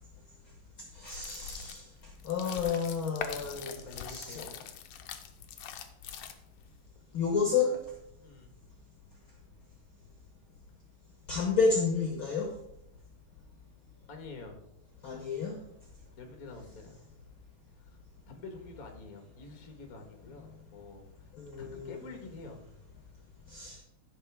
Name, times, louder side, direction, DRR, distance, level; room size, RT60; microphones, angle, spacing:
voice 1, 0.9-1.8 2.2-3.7 4.1-4.5 7.1-7.7 11.3-12.5 15.0-15.6 21.4-22.0 23.5-23.8, left 5 dB, 55° left, 1 dB, 1.5 m, -30 dB
sound 1, 1.0-6.7, left 8 dB, 80° left, 1.5 m, -43 dB
voice 2, 3.3-4.7 6.9-7.2 8.2-8.5 14.1-14.6 16.2-17.1 17.8-18.0 18.3-21.3 21.6-22.6, left 3 dB, 40° left, 3 dB, 1.3 m, -48 dB
15.0 x 5.9 x 3.5 m, 0.80 s
omnidirectional pair, 3.7 m